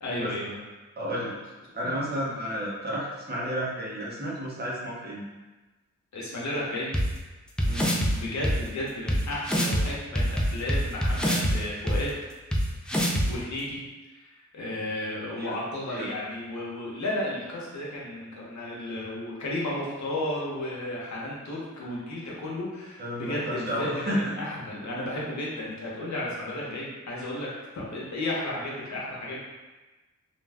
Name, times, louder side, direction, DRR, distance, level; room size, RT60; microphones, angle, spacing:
voice 1, 0.0-0.6 1.1-1.2 1.8-1.9 6.1-6.9 8.1-12.1 13.3-13.8 14.1-27.5 27.7-29.4, left 1 dB, 70° left, -5 dB, 0.8 m, -33 dB
voice 2, 1.0-1.4 1.7-5.2 7.6-8.1 15.4-15.5 15.9-16.1 23.0-24.3, equal, 35° right, -6 dB, 0.8 m, -32 dB
sound 1, 6.9-7.0 7.6-8.1 8.4-8.5 9.1-9.2 9.4-9.8 10.1-11.5 11.9-12.0 12.5-12.6 12.9-13.2, equal, 5° left, 0.3 m, -24 dB
2.4 x 2.2 x 3.3 m, 1.2 s
wide cardioid pair, 105°, 30 cm